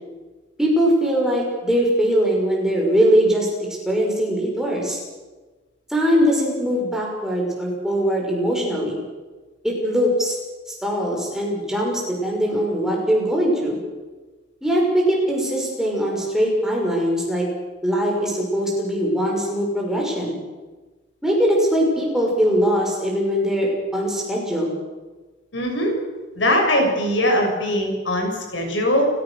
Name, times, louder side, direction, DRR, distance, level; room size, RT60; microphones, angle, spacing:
voice 1, 0.6-3.5 3.9-5.0 5.9-9.0 9.6-10.4 10.7-13.8 14.6-17.4 17.8-20.4 21.2-24.7, equal, 5° right, -2 dB, 6.3 m, -21 dB
voice 2, 25.5-25.9 26.4-29.1, equal, 75° left, 2 dB, 6.5 m, -21 dB
30.0 x 16.5 x 6.6 m, 1.3 s
head